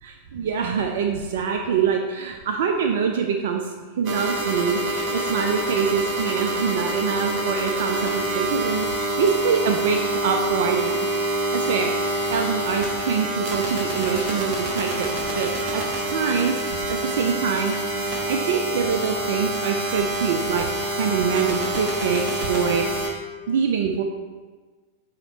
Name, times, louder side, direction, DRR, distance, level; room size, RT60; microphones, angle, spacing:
voice 1, 0.0-16.6 16.9-17.7 18.0-20.7 21.0-22.9 23.5-24.0, right 6 dB, 55° right, 4 dB, 0.4 m, -25 dB
sound 1, 4.0-23.1, right 1 dB, 35° right, 1.2 m, -26 dB
7.8 x 2.9 x 4.2 m, 1.4 s
figure-of-eight pair, 90°, 0 cm